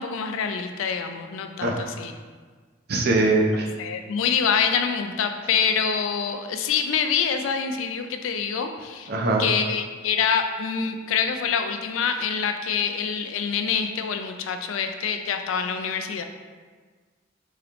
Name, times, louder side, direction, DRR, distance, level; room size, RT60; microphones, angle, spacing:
voice 1, 0.0-2.1 3.8-9.1 9.4-16.2, left 6 dB, 80° left, 7 dB, 0.3 m, -26 dB
voice 2, 2.9-3.7 9.1-9.4, right 2 dB, 55° right, 0 dB, 0.5 m, -21 dB
3.6 x 2.9 x 3.3 m, 1.5 s
head